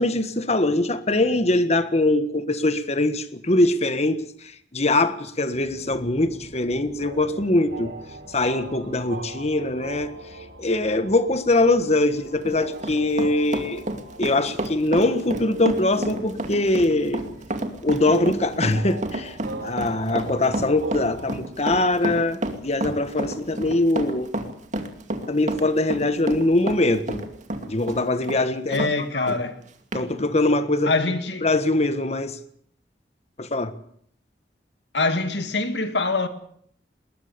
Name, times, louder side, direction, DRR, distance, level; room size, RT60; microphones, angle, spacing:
voice 1, 0.0-7.9 8.3-10.1 10.6-13.8 14.2-17.2 17.8-24.3 25.3-27.2 27.6-28.9 29.1-29.4 29.9-30.9 31.4-32.4 33.4-33.7, left 2 dB, 40° left, 1.5 m, -22 dB
sound 1, 5.5-21.3, right 2 dB, 80° right, 3.1 m, -40 dB
Run, 12.3-28.9 29.3-29.4 29.9-30.0, right 1 dB, 45° right, 2.4 m, -30 dB
voice 2, 28.7-29.6 30.8-31.5 34.9-36.3, left 3 dB, 80° left, 2.2 m, -24 dB
20.5 x 20.5 x 7.0 m
head